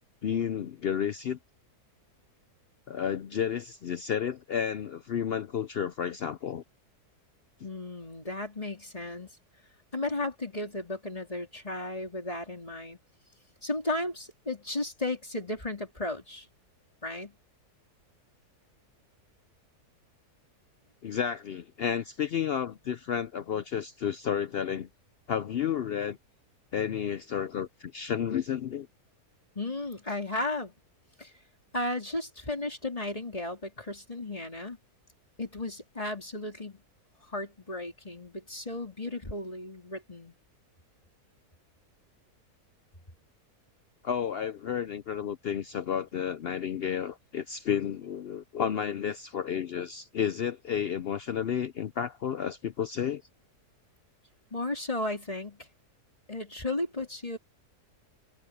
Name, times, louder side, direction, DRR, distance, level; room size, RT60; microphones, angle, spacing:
voice 1, 0.2-1.4 2.9-6.6 21.0-24.9 25.3-26.2 26.7-28.9 44.0-53.2, left 8 dB, 75° left, 0.5 m, -31 dB
voice 2, 7.6-9.3 9.9-13.0 13.6-16.5 17.0-17.3 29.6-30.7 31.2-31.3 31.7-34.8 35.4-36.8 37.2-40.3 54.5-55.7 56.3-57.4, left 2 dB, 20° left, 3.7 m, -34 dB
omnidirectional pair, 1.7 m